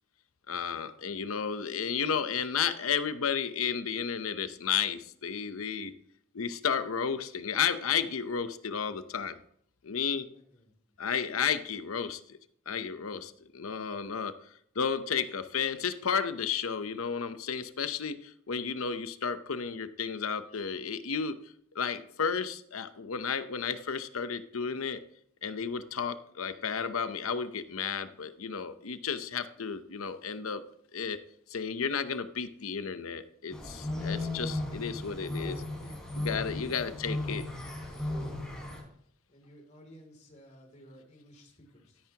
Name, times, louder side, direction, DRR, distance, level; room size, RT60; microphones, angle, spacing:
voice 1, 0.5-5.9 6.3-9.4 9.8-10.3 11.0-12.4 12.7-14.3 14.8-21.4 21.7-25.0 25.4-30.6 30.9-31.2 31.5-35.6 36.2-37.5, left 6 dB, 90° left, 11 dB, 0.8 m, -32 dB
voice 2, 10.3-10.7 35.8-36.1 36.6-36.8 39.3-42.0, equal, 35° left, 3 dB, 2.9 m, -54 dB
sound 1, 33.5-38.8, left 1 dB, 5° left, 3.9 m, -36 dB
13.0 x 10.5 x 2.9 m, 0.67 s
head